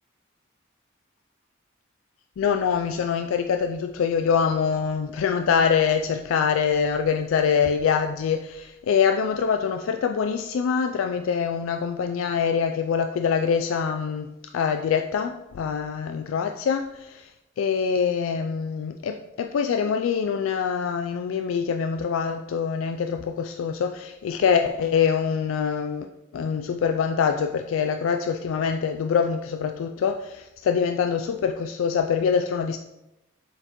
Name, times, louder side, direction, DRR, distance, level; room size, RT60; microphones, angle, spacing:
voice 1, 2.4-26.1 26.3-32.8, left 6 dB, 75° left, 6 dB, 0.3 m, -24 dB
7.7 x 4.5 x 3.0 m, 0.94 s
head